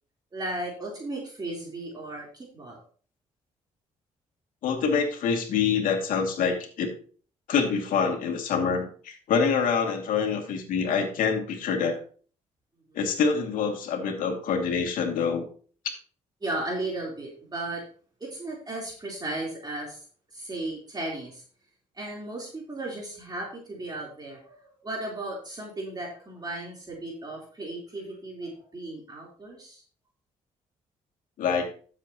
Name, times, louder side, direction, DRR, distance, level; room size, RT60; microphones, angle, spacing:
voice 1, 0.3-2.8 12.9-13.0 16.4-17.8 18.2-20.0 20.3-21.4 21.9-29.8, right 2 dB, 30° right, -2 dB, 3.7 m, -35 dB
voice 2, 4.6-6.9 7.5-12.0 12.9-15.4 31.4-31.7, left 6 dB, 80° left, 3 dB, 2.4 m, -26 dB
13.0 x 7.5 x 2.9 m, 0.43 s
cardioid pair, 75°, 14 cm